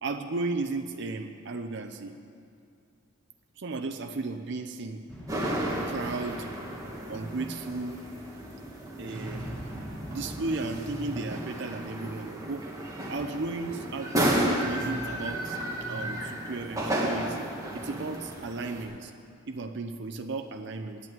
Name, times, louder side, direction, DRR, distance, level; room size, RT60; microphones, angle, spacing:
voice 1, 0.0-2.1 3.6-5.0 5.4-6.5 7.1-8.0 9.0-9.5 10.1-12.7 13.1-17.5 17.7-19.1 19.5-21.0, right 3 dB, 55° right, 6 dB, 0.6 m, -35 dB
sound 1, 5.1-11.2, equal, 5° left, 1.3 m, -44 dB
sound 2, 5.3-18.8, right 1 dB, 15° right, 1.4 m, -33 dB
9.1 x 8.2 x 9.3 m, 2.5 s
head